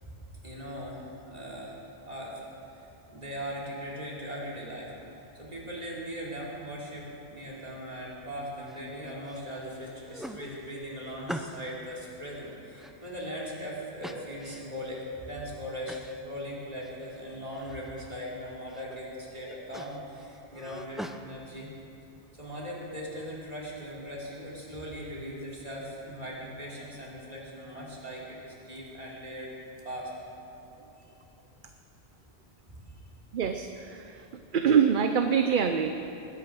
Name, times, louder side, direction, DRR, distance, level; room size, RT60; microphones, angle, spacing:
voice 1, 0.4-1.7 2.0-2.4 2.7-4.9 5.4-21.7 22.4-29.5 29.8-30.2 32.7-32.8, equal, 40° right, -5 dB, 3.3 m, -39 dB
sound 1, 8.7-9.4 9.8-11.8 12.3-13.5 14.0-14.8 15.3-15.4 15.9-16.2 16.5-17.2 17.5-18.1 18.5-19.0 19.3-21.2, equal, ahead, 0.4 m, -43 dB
voice 2, 33.3-34.2 34.5-35.9, right 7 dB, 55° right, 6 dB, 0.8 m, -24 dB
21.0 x 9.2 x 6.2 m, 2.9 s
omnidirectional pair, 1.1 m